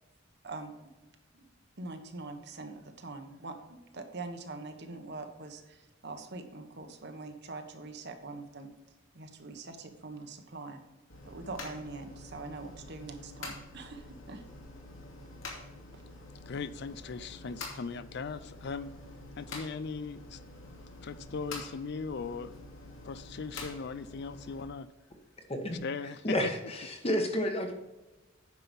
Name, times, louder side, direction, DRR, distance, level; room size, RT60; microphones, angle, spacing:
voice 1, 1.8-8.7 9.1-10.8 11.3-14.4 15.9-16.0, right 3 dB, 60° right, 6 dB, 1.3 m, -43 dB
sound 1, 11.1-24.6, left 2 dB, 85° left, 2.6 m, -47 dB
voice 2, 16.5-18.9 19.4-20.4 21.0-22.6 23.0-24.9 25.8-26.5, left 5 dB, 60° left, 14 dB, 0.4 m, -38 dB
voice 3, 25.5-25.8 26.2-27.7, equal, 30° left, 5 dB, 1.3 m, -30 dB
9.7 x 5.8 x 5.3 m, 1.1 s
head